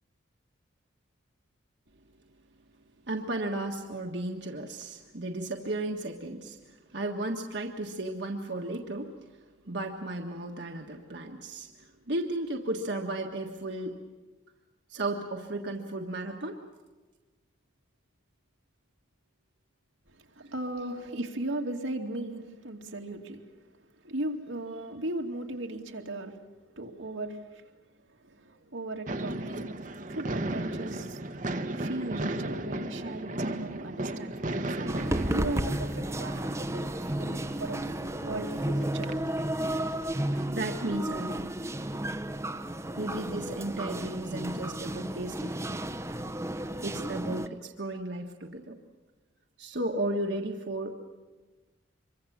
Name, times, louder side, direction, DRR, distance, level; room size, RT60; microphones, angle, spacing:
voice 1, 3.1-9.2 9.7-14.0 14.9-16.6 20.4-20.5 20.9-21.1 40.5-41.5 43.0-45.8 46.8-48.8 49.6-51.0, right 1 dB, 60° right, 1 dB, 1.6 m, -34 dB
voice 2, 20.1-23.4 24.0-26.4 26.7-27.6 28.2-29.7 30.1-31.2 31.7-39.3, right 1 dB, 85° right, 1 dB, 2.5 m, -37 dB
sound 1, 29.1-40.4, right 1 dB, 40° right, 1.0 m, -36 dB
sound 2, 34.9-47.5, right 1 dB, 15° right, 0.8 m, -33 dB
26.0 x 23.5 x 7.4 m, 1.2 s
head